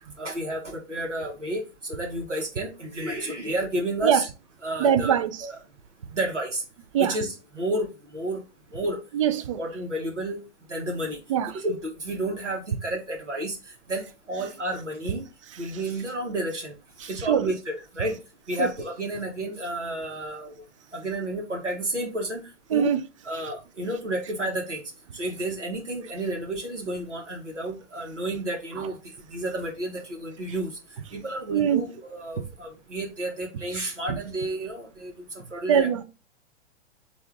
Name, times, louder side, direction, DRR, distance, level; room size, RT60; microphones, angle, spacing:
voice 1, 0.2-1.6 1.9-4.3 4.6-5.1 5.4-5.6 6.1-6.6 7.0-7.9 8.1-8.4 8.7-9.0 9.6-10.4 10.7-11.2 11.5-13.6 13.9-14.0 14.3-15.2 15.6-16.7 17.1-18.2 18.5-20.5 20.9-22.4 22.7-22.9 23.2-24.8 25.1-28.9 29.3-30.7 31.1-35.1 35.5-35.9, right 1 dB, 90° right, 1.2 m, -31 dB
voice 2, 4.8-5.5 6.9-7.2 9.1-9.6 11.3-11.5 15.7-15.8 17.0-17.5 18.6-18.7 22.7-23.0 31.5-31.8 34.1-34.2 35.7-36.0, right 8 dB, 30° right, 0.4 m, -22 dB
4.4 x 2.7 x 3.3 m
figure-of-eight pair, 110°, 35 cm